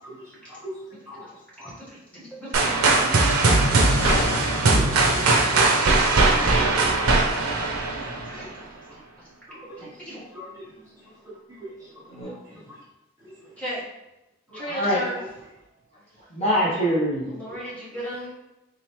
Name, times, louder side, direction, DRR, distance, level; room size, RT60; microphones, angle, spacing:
voice 1, 0.0-1.7 6.9-7.6 8.0-8.7 9.5-12.8 13.2-13.6 14.5-14.8 15.1-15.3 17.5-17.7, equal, 15° right, -8 dB, 1.0 m, -44 dB
voice 2, 1.6-3.5 7.3-8.6 8.9-9.0 9.5-10.2 13.6-13.8 14.5-15.2 17.3-18.3, right 1 dB, 5° left, -9 dB, 1.1 m, -38 dB
sound 1, 2.5-8.4, right 3 dB, 85° right, 0.6 m, -20 dB
Gunshot gunfire, 4.0-5.2, left 3 dB, 85° left, 0.5 m, -33 dB
voice 3, 4.5-4.9 8.1-8.3 12.1-12.6 14.7-15.0 16.3-17.3, equal, 30° left, -7 dB, 0.8 m, -25 dB
3.7 x 3.2 x 3.0 m, 0.94 s
head